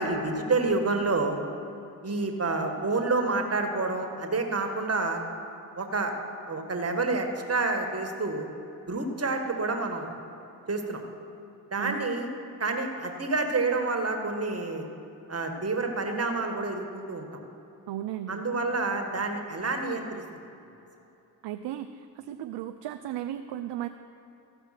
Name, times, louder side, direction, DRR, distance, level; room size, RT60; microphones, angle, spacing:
voice 1, 0.0-1.4 2.0-5.2 5.8-6.1 6.5-8.5 8.9-10.1 10.7-11.0 11.7-12.3 12.6-14.9 15.3-17.3 18.3-20.2, right 3 dB, 35° right, 4 dB, 1.7 m, -28 dB
voice 2, 17.9-18.4 21.4-23.9, right 12 dB, 65° right, 8 dB, 0.6 m, -35 dB
15.0 x 5.4 x 5.9 m, 2.9 s
supercardioid pair, 45°, 45 cm